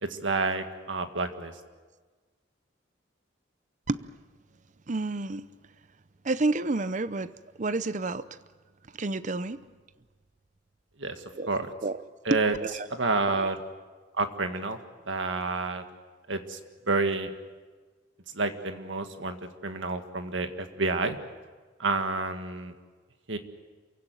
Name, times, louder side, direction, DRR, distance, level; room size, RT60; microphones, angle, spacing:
voice 1, 0.0-1.5 11.0-11.7 12.3-12.5 12.9-13.6 14.2-14.8 15.1-15.8 16.3-16.6 16.9-17.3 18.3-19.4 19.6-21.2 21.8-22.7 23.3-23.4, right 3 dB, 75° right, 7 dB, 1.8 m, -29 dB
voice 2, 4.9-5.5 6.2-7.3 7.6-8.4 9.0-9.6 11.4-11.5 11.8-12.0 12.6-12.9 13.3-13.5, right 3 dB, 40° right, 14 dB, 0.6 m, -30 dB
28.0 x 16.0 x 9.2 m, 1.4 s
head